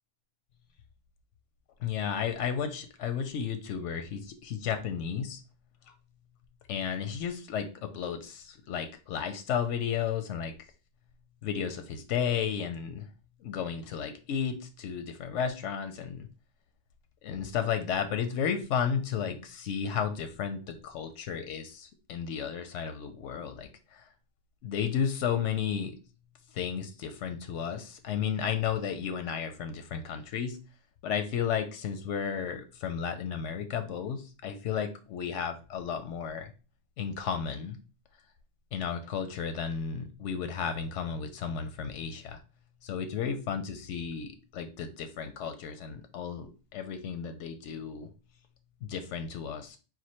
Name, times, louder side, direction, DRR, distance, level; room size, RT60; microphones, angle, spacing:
voice 1, 1.8-5.4 6.7-10.5 11.4-13.1 13.4-16.3 17.2-24.0 24.6-25.9 26.5-30.6 31.0-36.5 37.0-37.8 38.7-42.4 42.8-48.1 48.8-49.8, left 7 dB, 90° left, 8 dB, 0.9 m, -33 dB
4.3 x 2.4 x 4.2 m, 0.34 s
omnidirectional pair, 1.2 m